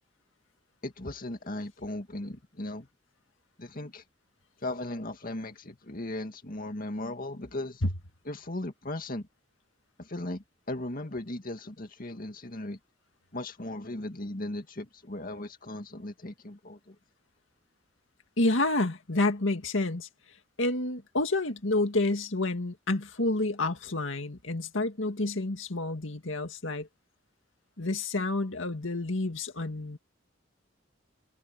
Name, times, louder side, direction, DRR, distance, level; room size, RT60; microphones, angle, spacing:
voice 1, 0.8-2.9 3.6-4.0 4.6-7.8 8.2-9.3 10.0-12.8 13.3-17.0, left 1 dB, 50° left, 2.1 m, -37 dB
voice 2, 18.4-20.1 20.6-26.9 27.8-30.0, left 2 dB, 85° left, 2.1 m, -29 dB
head